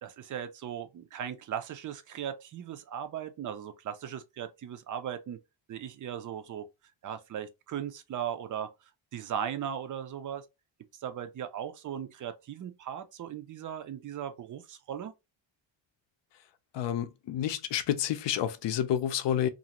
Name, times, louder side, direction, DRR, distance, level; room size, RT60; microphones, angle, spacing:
voice 1, 0.0-5.4 5.7-6.7 7.0-8.7 9.1-10.5 10.9-15.1, right 9 dB, 40° right, 0.5 m, -38 dB
voice 2, 16.7-19.5, left 10 dB, 60° left, 0.6 m, -29 dB
2.6 x 2.4 x 2.9 m
cardioid pair, 135°, 49 cm